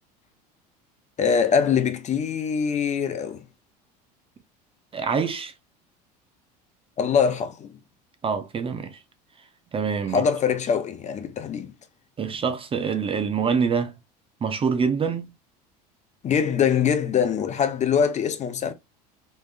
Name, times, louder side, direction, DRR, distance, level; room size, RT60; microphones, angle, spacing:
voice 1, 1.2-3.4 7.0-7.7 10.1-11.7 16.2-18.7, left 7 dB, 35° left, 0.8 m, -23 dB
voice 2, 4.9-5.5 8.2-9.0 9.7-10.3 12.2-13.9 14.4-15.3, right 6 dB, 25° right, 0.7 m, -25 dB
3.2 x 3.2 x 2.5 m
hypercardioid pair, 85°, 20 cm